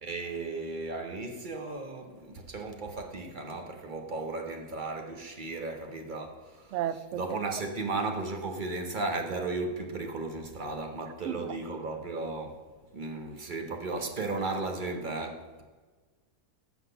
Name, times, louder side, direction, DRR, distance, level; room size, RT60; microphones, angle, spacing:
voice 1, 0.0-6.8 7.1-12.6 12.9-15.6, right 3 dB, 40° right, 0.9 m, -35 dB
voice 2, 6.7-7.4 11.2-11.6, right 11 dB, 70° right, 0.7 m, -33 dB
7.1 x 5.8 x 6.6 m
omnidirectional pair, 1.6 m